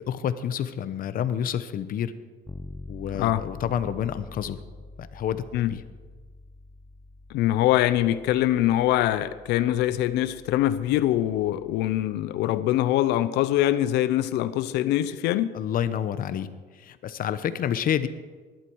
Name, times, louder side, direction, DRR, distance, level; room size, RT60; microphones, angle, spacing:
voice 1, 0.0-2.1 2.9-4.6 5.0-5.4 5.7-5.8 15.5-18.1, left 9 dB, 55° left, 13 dB, 1.0 m, -29 dB
Bass guitar, 2.5-12.2, left 2 dB, 10° left, 0.7 m, -46 dB
voice 2, 3.1-3.4 5.5-5.7 7.3-15.5, left 13 dB, 85° left, 15 dB, 0.8 m, -23 dB
19.5 x 12.0 x 4.8 m, 1.4 s
cardioid pair, 110°, 17 cm